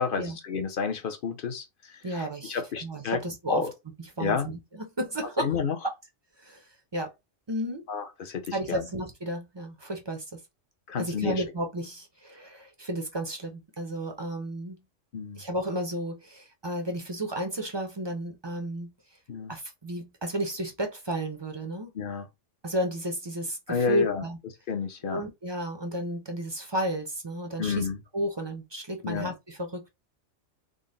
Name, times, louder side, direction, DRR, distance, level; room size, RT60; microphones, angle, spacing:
voice 1, 0.0-3.2 3.5-3.7 4.2-4.5 5.4-5.8 7.9-8.9 10.9-11.4 15.1-15.4 19.3-19.5 21.9-22.3 23.7-24.2 24.7-25.2 27.6-28.0 29.0-29.3, left 6 dB, 50° left, 0.8 m, -30 dB
voice 2, 2.0-3.6 4.2-5.5 5.8-5.9 6.4-6.7 6.9-7.1 7.5-7.8 8.5-10.4 11.0-14.8 15.4-18.9 19.5-21.9 22.6-24.4 25.0-27.9 28.1-29.9, right 1 dB, 35° right, 0.4 m, -32 dB
3.8 x 2.1 x 3.8 m
omnidirectional pair, 1.3 m